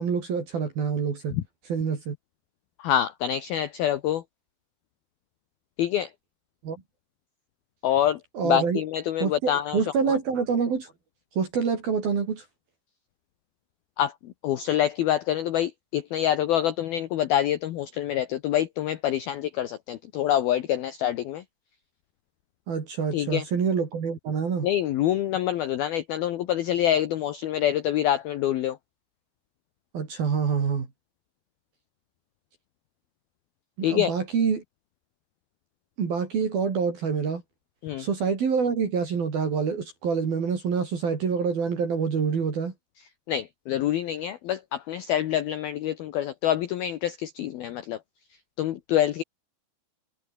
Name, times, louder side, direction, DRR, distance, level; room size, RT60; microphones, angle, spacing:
voice 1, 0.0-1.3 1.7-2.2 6.6-6.8 8.4-8.8 9.2-10.9 11.4-12.5 22.7-24.7 29.9-30.9 33.8-34.6 36.0-37.4 38.0-42.7, right 6 dB, 50° right, 5.3 m, -26 dB
voice 2, 2.8-4.2 5.8-6.1 7.8-9.8 14.0-14.1 14.4-21.4 23.1-23.4 24.6-28.8 33.8-34.1 37.8-38.0 43.3-48.0 48.6-49.2, left 11 dB, 75° left, 2.3 m, -26 dB
omnidirectional pair, 5.9 m